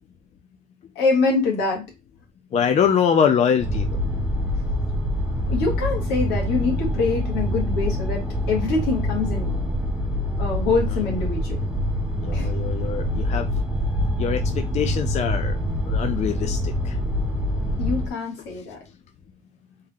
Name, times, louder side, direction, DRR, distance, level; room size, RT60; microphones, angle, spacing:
voice 1, 1.0-1.8 5.5-9.6 10.4-11.6 12.3-12.5 17.8-18.8, left 4 dB, 90° left, 0 dB, 1.8 m, -24 dB
voice 2, 2.5-3.8 12.2-13.5 14.2-15.5 15.9-16.9, left 7 dB, 45° left, 7 dB, 0.5 m, -23 dB
sound 1, 3.6-18.1, equal, 10° right, 0.9 m, -25 dB
3.6 x 2.7 x 3.6 m, 0.23 s
cardioid pair, 110°, 17 cm